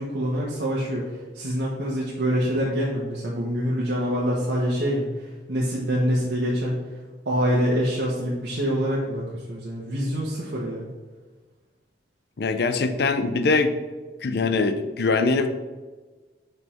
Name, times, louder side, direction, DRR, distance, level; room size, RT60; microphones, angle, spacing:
voice 1, 0.0-5.1 5.5-6.8 7.2-10.9, equal, 90° right, -5 dB, 1.2 m, -25 dB
voice 2, 12.4-13.7 14.2-15.5, left 3 dB, 65° left, 9 dB, 0.6 m, -22 dB
5.9 x 5.3 x 4.4 m, 1.3 s
head